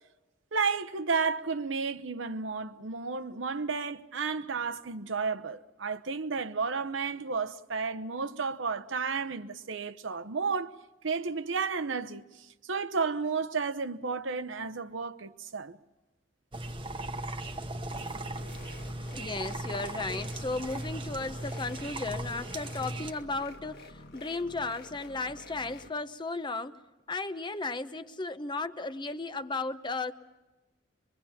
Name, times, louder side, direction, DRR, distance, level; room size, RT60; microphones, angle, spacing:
voice 1, 0.5-10.7 11.0-15.8, right 5 dB, 90° right, 0.9 m, -32 dB
sound 1, 16.5-23.1, right 1 dB, 25° right, 1.0 m, -38 dB
sound 2, 17.9-25.9, left 2 dB, 60° left, 1.5 m, -50 dB
voice 2, 19.1-26.8 27.1-30.1, left 3 dB, 25° left, 0.9 m, -35 dB
24.0 x 23.0 x 7.3 m
head